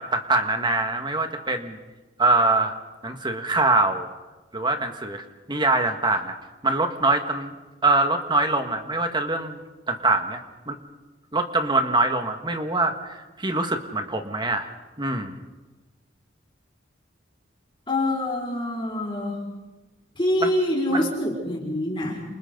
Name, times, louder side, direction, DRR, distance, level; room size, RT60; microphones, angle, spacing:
voice 1, 0.0-1.8 2.2-2.7 3.0-4.1 4.5-6.4 6.6-7.5 7.8-9.6 9.9-10.8 11.3-14.7 15.0-15.4 20.4-20.5 20.9-21.1, right 2 dB, 25° right, 5 dB, 1.9 m, -24 dB
voice 2, 17.9-19.4 20.1-22.2, left 1 dB, 25° left, -4 dB, 5.1 m, -25 dB
30.0 x 28.0 x 4.0 m, 1.1 s
head